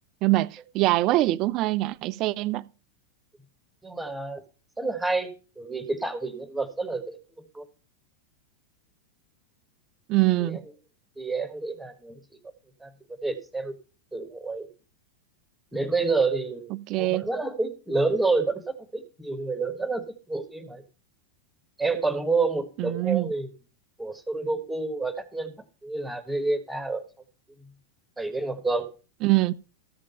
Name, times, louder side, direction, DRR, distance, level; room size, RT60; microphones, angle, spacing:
voice 1, 0.2-2.7 10.1-10.6 16.7-17.3 22.8-23.3 29.2-29.6, right 18 dB, 40° right, 0.4 m, -24 dB
voice 2, 3.8-4.4 4.8-5.3 5.6-7.2 7.5-7.6 10.4-10.6 11.2-12.2 12.8-12.9 13.2-13.7 14.1-14.7 15.7-20.8 21.8-23.5 24.0-25.5 25.8-27.0 28.2-28.9, right 3 dB, 5° right, 1.4 m, -28 dB
13.5 x 5.2 x 5.5 m
figure-of-eight pair, 90°, 0 cm